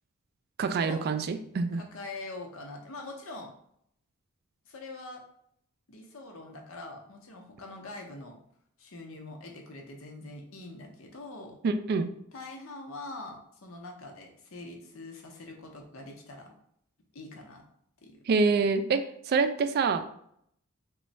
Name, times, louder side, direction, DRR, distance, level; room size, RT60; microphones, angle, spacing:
voice 1, 0.6-1.8 11.6-12.1 18.3-20.1, right 4 dB, 50° right, 10 dB, 0.3 m, -26 dB
voice 2, 1.8-3.5 4.7-5.2 5.9-8.4 8.8-11.6 12.3-16.6 17.1-17.6 18.0-18.2, left 2 dB, 80° left, 2 dB, 0.8 m, -43 dB
3.1 x 2.3 x 4.0 m, 0.70 s
head